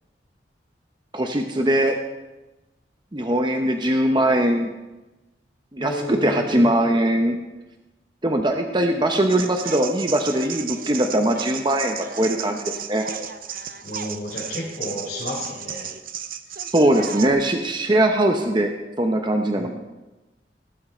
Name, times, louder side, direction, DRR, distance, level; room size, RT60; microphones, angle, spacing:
voice 1, 1.1-2.0 3.1-4.7 5.7-7.4 8.2-13.0 16.7-18.7 19.0-19.7, right 1 dB, 25° right, 4 dB, 0.8 m, -21 dB
voice 2, 5.8-6.7 13.8-15.9 16.9-17.3 19.6-19.7, left 1 dB, 50° left, -8 dB, 4.1 m, -32 dB
sound 1, 9.3-17.3, right 8 dB, 50° right, 0.7 m, -34 dB
18.5 x 8.7 x 4.4 m, 1.1 s
head